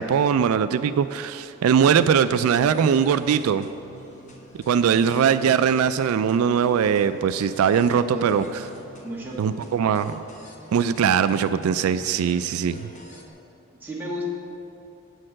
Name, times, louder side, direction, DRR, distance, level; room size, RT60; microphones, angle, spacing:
voice 1, 0.0-3.7 4.5-8.6 9.4-10.1 10.7-12.9, right 7 dB, 85° right, 12 dB, 0.3 m, -21 dB
sound 1, 2.6-13.3, right 1 dB, 35° left, 1.0 m, -46 dB
voice 2, 7.9-8.4 9.0-9.5 13.8-14.3, left 1 dB, 10° right, -5 dB, 1.5 m, -33 dB
8.5 x 6.5 x 7.6 m, 2.8 s
head